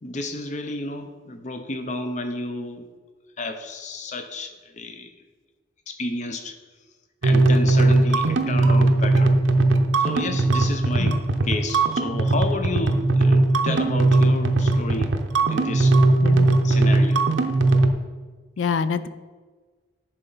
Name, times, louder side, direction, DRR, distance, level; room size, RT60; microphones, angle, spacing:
voice 1, 0.0-2.8 3.4-5.1 5.9-6.5 7.2-9.3 10.0-11.2 11.5-15.1 15.4-16.0 16.6-17.3, left 2 dB, 40° left, 7 dB, 0.6 m, -31 dB
sound 1, 7.2-17.9, right 2 dB, 85° right, 0.6 m, -19 dB
voice 2, 16.2-16.6 18.6-19.1, left 5 dB, 80° left, 14 dB, 0.4 m, -25 dB
10.5 x 4.5 x 3.9 m, 1.4 s
head